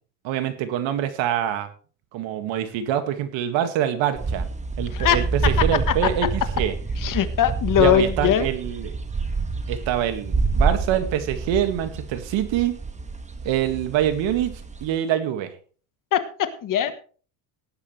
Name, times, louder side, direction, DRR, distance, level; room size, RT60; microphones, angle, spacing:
voice 1, 0.2-1.7 2.1-4.5 4.8-6.7 7.8-9.0 9.7-12.7 13.4-15.5, right 10 dB, 65° right, 9 dB, 2.1 m, -25 dB
sound 1, 4.2-14.9, right 3 dB, 15° right, 1.3 m, -27 dB
voice 2, 4.9-5.2 7.0-8.5 16.1-16.9, left 10 dB, 40° left, 10 dB, 1.4 m, -21 dB
18.0 x 10.0 x 3.3 m, 0.40 s
cardioid pair, 150°, 50 cm